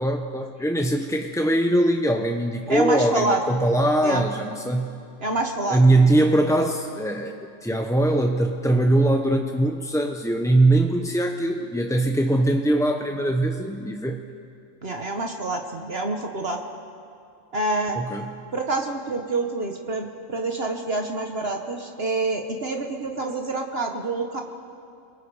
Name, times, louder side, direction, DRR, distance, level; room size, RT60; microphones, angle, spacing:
voice 1, 0.0-4.9 5.7-14.2 18.0-18.3, right 1 dB, 5° left, 3 dB, 0.5 m, -21 dB
voice 2, 2.7-3.4 4.0-4.2 5.2-5.8 14.8-16.6 17.5-18.0 18.5-24.4, right 2 dB, 50° right, 3 dB, 1.4 m, -27 dB
28.0 x 21.5 x 4.8 m, 2.5 s
omnidirectional pair, 1.4 m